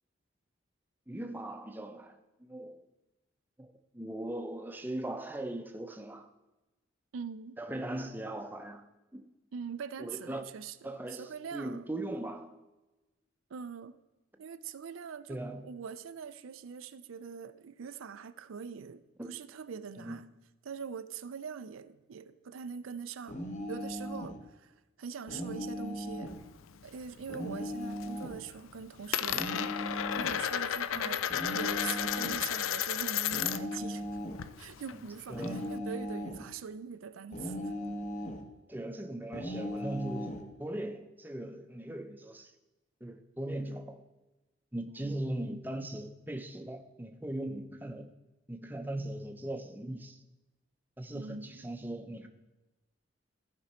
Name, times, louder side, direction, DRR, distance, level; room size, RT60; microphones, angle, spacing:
voice 1, 1.1-2.8 3.6-6.3 7.6-9.3 10.0-10.4 10.8-12.6 15.3-15.7 19.2-19.4 20.0-20.2 30.9-31.2 35.3-35.8 38.7-42.5 43.0-44.0 44.7-48.1 48.5-50.2 51.0-52.3, right 1 dB, 10° right, 0.6 m, -39 dB
voice 2, 7.1-7.6 9.5-10.8 11.1-11.8 13.5-14.0 14.4-20.3 20.6-23.4 23.7-26.3 26.8-31.2 31.5-34.2 34.6-37.7 45.0-45.2 51.1-51.6, right 6 dB, 90° right, 0.5 m, -43 dB
sound 1, 23.3-24.4 25.3-26.4 27.3-28.4 29.3-30.4 31.3-32.4 33.3-34.4 35.3-36.4 37.3-38.4 39.3-40.4, equal, 35° left, 1.0 m, -38 dB
Coin (dropping), 26.3-27.4 27.7-28.2 28.5-33.8 34.1-35.8, left 10 dB, 85° left, 0.4 m, -33 dB
14.5 x 5.3 x 4.3 m
head